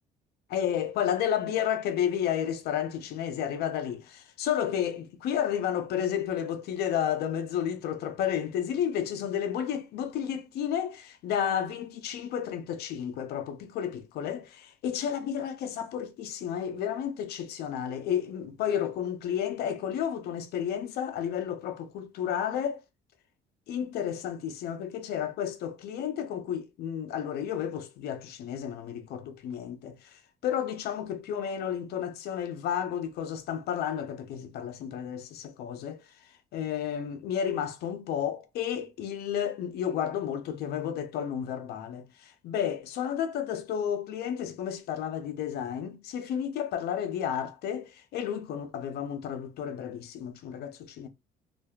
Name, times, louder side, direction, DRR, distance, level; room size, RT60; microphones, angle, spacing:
voice 1, 0.5-22.8 23.7-36.0 36.5-51.1, left 9 dB, 70° left, 0.5 m, -32 dB
2.6 x 2.2 x 2.2 m
cardioid pair, 110°, 17 cm